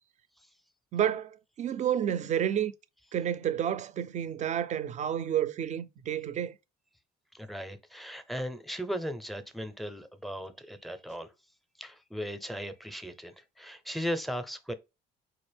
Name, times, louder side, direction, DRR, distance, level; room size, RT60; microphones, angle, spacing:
voice 1, 0.9-1.3 1.6-2.7 3.1-6.6, right 9 dB, 45° right, 0.5 m, -30 dB
voice 2, 7.3-11.3 11.8-14.7, equal, ahead, 0.6 m, -37 dB
4.2 x 2.5 x 3.3 m
cardioid pair, 110°, 17 cm